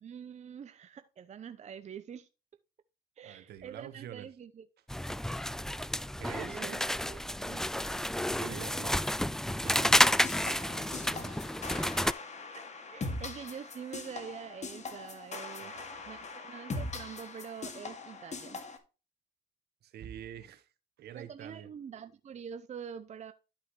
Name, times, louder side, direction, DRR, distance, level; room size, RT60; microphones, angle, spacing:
voice 1, 0.0-2.3 3.2-4.7 6.2-7.7 8.4-8.7 12.9-18.6 21.1-23.3, right 7 dB, 40° right, 0.7 m, -45 dB
voice 2, 3.2-4.3 6.2-6.9 8.3-9.1 9.4-10.1 10.7-11.4 15.6-16.2 19.8-20.7 21.0-21.7, right 10 dB, 70° right, 1.2 m, -47 dB
sound 1, 4.9-12.1, left 1 dB, 5° left, 0.3 m, -30 dB
sound 2, 10.0-18.8, left 3 dB, 40° left, 2.0 m, -41 dB
11.5 x 5.6 x 3.0 m
supercardioid pair, 70°, 17 cm